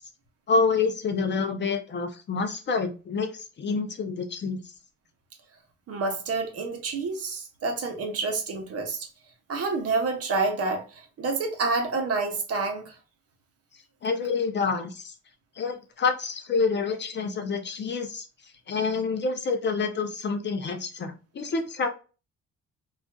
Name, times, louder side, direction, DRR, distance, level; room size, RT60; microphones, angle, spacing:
voice 1, 0.5-4.6 14.0-15.1 15.6-18.3 18.7-21.9, left 4 dB, 40° left, 0.5 m, -27 dB
voice 2, 5.9-9.1 9.5-12.9, right 3 dB, 55° right, 0.8 m, -28 dB
2.5 x 2.3 x 2.2 m
cardioid pair, 90°, 30 cm